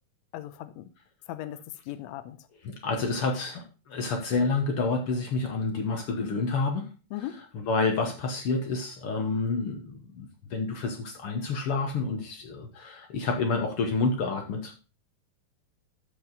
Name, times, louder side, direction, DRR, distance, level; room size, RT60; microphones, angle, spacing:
voice 1, 0.3-0.9 1.3-2.4 7.1-7.4, left 13 dB, 85° left, 1.5 m, -38 dB
voice 2, 2.6-6.9 7.2-14.7, left 3 dB, 65° left, 1.5 m, -29 dB
13.5 x 5.0 x 4.0 m
omnidirectional pair, 3.9 m